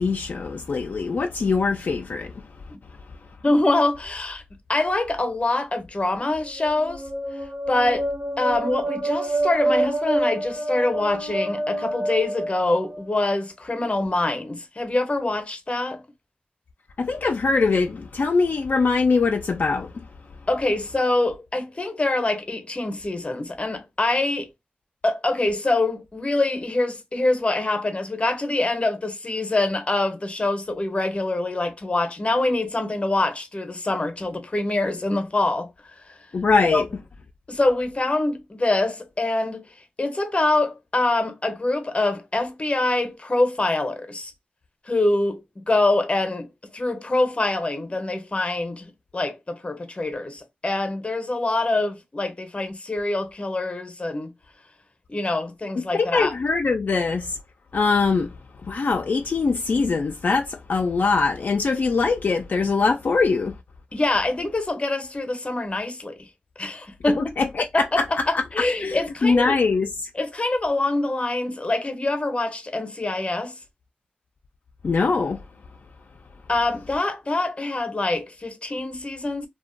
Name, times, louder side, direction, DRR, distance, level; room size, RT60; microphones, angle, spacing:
voice 1, 0.0-2.4 17.0-20.1 36.3-36.9 55.8-57.4 57.7-58.3 58.6-63.6 67.2-68.4 68.8-70.1 74.8-75.4, left 4 dB, 60° left, 0.3 m, -22 dB
voice 2, 3.4-4.4 4.7-7.0 7.7-8.1 8.4-16.0 20.5-24.5 25.0-35.7 36.1-36.2 36.7-36.8 37.5-39.6 40.0-44.3 44.9-54.3 55.1-56.3 63.9-66.3 66.6-67.3 67.7-69.6 70.1-73.6 76.5-79.5, left 2 dB, 35° left, 0.6 m, -25 dB
sound 1, 6.5-13.3, right 1 dB, 45° right, 0.7 m, -27 dB
2.5 x 2.2 x 2.4 m
cardioid pair, 45°, 3 cm